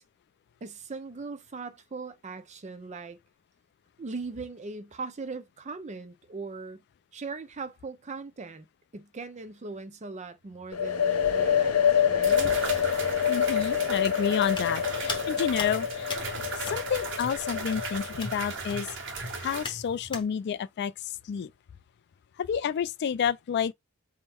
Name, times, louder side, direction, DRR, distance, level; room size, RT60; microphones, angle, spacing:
voice 1, 0.6-3.2 4.0-6.8 7.1-8.7 8.9-12.5, right 4 dB, 30° right, 0.5 m, -39 dB
sound 1, 10.7-18.4, left 8 dB, 80° left, 0.7 m, -27 dB
sound 2, 11.2-11.3 12.2-19.6, right 3 dB, 60° right, 1.3 m, -37 dB
voice 2, 13.3-16.1 16.6-18.9 19.4-20.9 21.2-21.5 22.4-23.7, left 7 dB, 50° left, 0.3 m, -30 dB
Hands, 14.5-20.3, left 3 dB, 20° left, 0.9 m, -41 dB
3.6 x 2.1 x 4.3 m
head